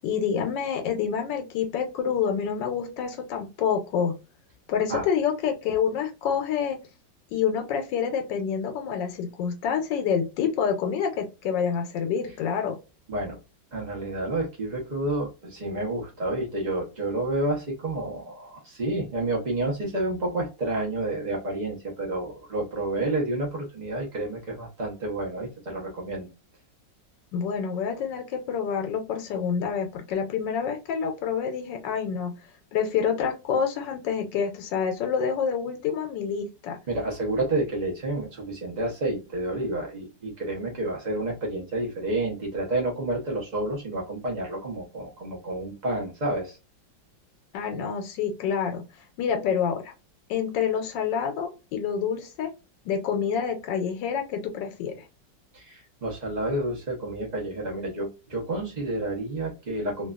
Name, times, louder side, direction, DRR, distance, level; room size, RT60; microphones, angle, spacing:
voice 1, 0.0-4.1 4.7-6.8 7.3-12.8 27.3-32.3 32.7-36.8 47.5-48.8 49.2-49.9 50.3-52.5 52.8-55.0, left 7 dB, 85° left, 5 dB, 1.3 m, -27 dB
voice 2, 13.1-13.4 13.7-26.3 36.9-46.6 55.5-60.1, right 2 dB, 85° right, 0 dB, 0.3 m, -30 dB
3.0 x 2.3 x 2.3 m, 0.28 s
omnidirectional pair, 1.9 m